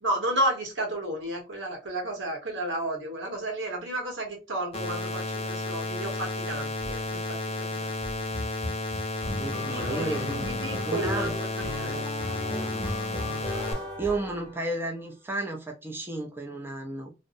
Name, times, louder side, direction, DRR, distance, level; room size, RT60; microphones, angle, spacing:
voice 1, 0.0-7.9 9.8-11.9, right 1 dB, 80° right, 1.1 m, -32 dB
sound 1, 4.7-13.7, left 2 dB, 35° left, 0.6 m, -32 dB
sound 2, 6.8-7.2 7.7-14.9, left 1 dB, 5° left, 0.8 m, -36 dB
voice 2, 9.4-10.4 10.8-11.4 11.8-12.0 12.6-12.9 13.4-13.5 14.0-17.1, right 2 dB, 10° right, 0.4 m, -33 dB
2.6 x 2.0 x 2.5 m
head